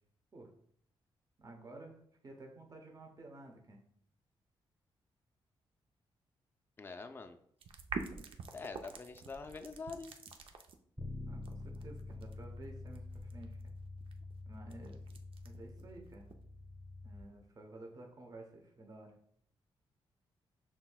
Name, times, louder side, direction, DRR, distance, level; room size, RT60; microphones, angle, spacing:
voice 1, 1.4-3.8 11.3-13.7 14.4-15.1 15.4-16.3 17.0-19.1, right 2 dB, 40° right, 1 dB, 1.0 m, -52 dB
voice 2, 6.8-7.4 8.5-10.2, left 4 dB, 20° left, 7 dB, 0.4 m, -45 dB
sound 1, 7.6-10.7 11.4-16.3, right 5 dB, 65° right, 0.5 m, -46 dB
Bass guitar, 11.0-17.2, left 2 dB, 10° right, 1.0 m, -47 dB
6.0 x 3.5 x 2.3 m, 0.66 s
cardioid pair, 75°, 10 cm